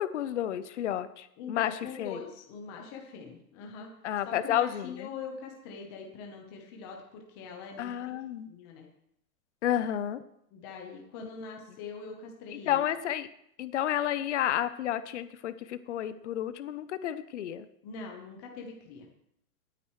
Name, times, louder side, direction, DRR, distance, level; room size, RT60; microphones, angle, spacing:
voice 1, 0.0-2.2 4.0-5.1 7.8-8.5 9.6-10.2 12.5-13.3 13.6-17.7, left 11 dB, 45° left, 13 dB, 0.7 m, -31 dB
voice 2, 1.4-3.9 4.2-7.9 8.5-8.9 10.5-12.8 17.8-19.1, left 5 dB, 15° left, 1 dB, 0.9 m, -43 dB
19.5 x 9.2 x 3.1 m, 0.73 s
supercardioid pair, 180°, 48 cm